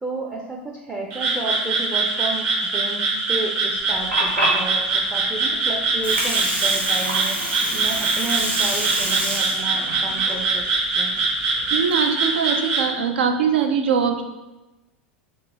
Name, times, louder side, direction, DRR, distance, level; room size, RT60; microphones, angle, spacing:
voice 1, 0.0-7.4 7.7-10.6 11.0-11.1, right 2 dB, 10° right, -1 dB, 0.5 m, -32 dB
Frog, 1.1-12.9, right 3 dB, 45° right, 1.1 m, -23 dB
Water, 3.8-11.7, right 1 dB, 90° right, 0.8 m, -28 dB
voice 2, 11.7-14.2, right 6 dB, 70° right, 6 dB, 0.5 m, -21 dB
3.9 x 2.9 x 3.4 m, 1.0 s
figure-of-eight pair, 90°, 6 cm